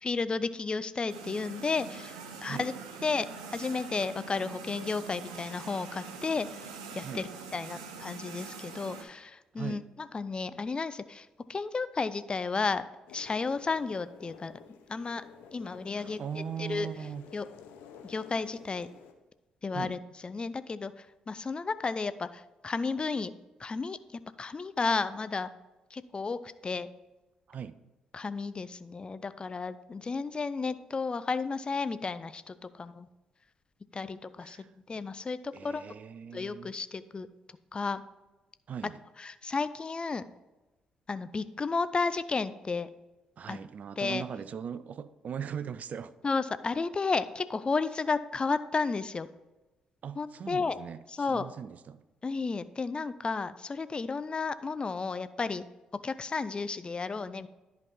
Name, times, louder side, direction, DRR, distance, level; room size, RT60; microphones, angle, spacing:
voice 1, 0.0-2.7 3.0-12.8 13.1-14.5 14.9-15.3 15.5-16.2 16.6-16.9 17.3-17.5 18.0-18.9 19.6-23.3 23.6-25.5 25.9-26.9 28.1-33.1 33.9-35.9 36.3-37.3 37.7-38.0 39.2-40.2 41.1-42.9 43.5-43.6 44.0-44.2 46.2-49.3 50.2-50.8 51.1-51.5 52.2-55.6 56.0-57.5, left 4 dB, 30° left, 14 dB, 0.4 m, -33 dB
sound 1, 1.1-9.0, right 5 dB, 80° right, 0.7 m, -44 dB
sound 2, 13.1-19.1, left 7 dB, 70° left, 0.7 m, -52 dB
voice 2, 15.9-17.3 19.7-20.0 27.5-27.8 34.4-34.7 35.5-36.7 38.7-39.0 43.4-46.1 50.0-52.0, right 7 dB, 50° right, 15 dB, 0.4 m, -39 dB
10.5 x 5.2 x 4.3 m, 1.1 s
hypercardioid pair, 45°, 3 cm